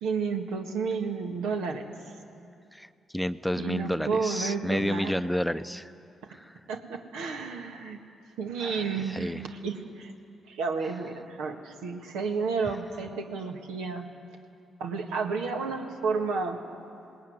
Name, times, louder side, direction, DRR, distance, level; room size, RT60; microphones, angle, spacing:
voice 1, 0.0-1.9 3.5-5.1 6.7-8.0 8.4-10.1 10.5-14.1 14.8-16.7, right 5 dB, 90° right, 3 dB, 1.7 m, -31 dB
voice 2, 3.1-5.9 6.3-6.5 8.6-9.4, equal, 5° left, 11 dB, 0.7 m, -31 dB
19.5 x 19.0 x 9.5 m, 2.6 s
supercardioid pair, 55°, 0 cm